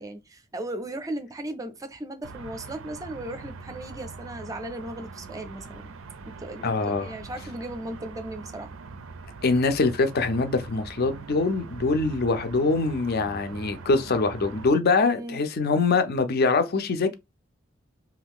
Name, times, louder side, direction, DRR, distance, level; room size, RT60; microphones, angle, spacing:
voice 1, 0.0-5.9 6.3-8.7 15.0-15.4, right 1 dB, 15° right, 0.4 m, -37 dB
sound 1, 2.2-14.7, right 4 dB, 90° right, 0.4 m, -42 dB
voice 2, 6.6-7.1 9.4-17.1, left 3 dB, 50° left, 0.5 m, -23 dB
2.6 x 2.3 x 3.5 m
head